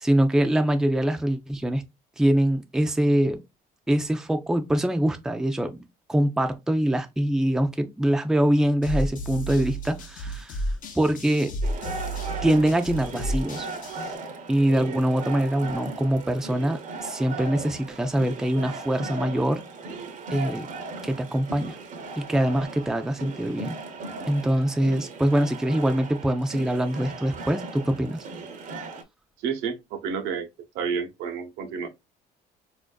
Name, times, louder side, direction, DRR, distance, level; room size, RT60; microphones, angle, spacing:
voice 1, 0.0-1.8 2.2-3.4 3.9-5.8 6.1-10.6 11.0-11.5 12.4-13.7 14.5-19.6 20.3-20.7 21.0-21.8 22.2-23.8 24.3-28.2, right 1 dB, 5° right, 0.4 m, -24 dB
sound 1, 8.8-14.2, right 1 dB, 50° left, 0.7 m, -32 dB
sound 2, 11.6-29.0, right 3 dB, 50° right, 0.6 m, -37 dB
voice 2, 29.4-30.5 30.7-31.9, right 6 dB, 85° right, 0.7 m, -30 dB
4.2 x 2.5 x 2.2 m
cardioid pair, 110°, 17 cm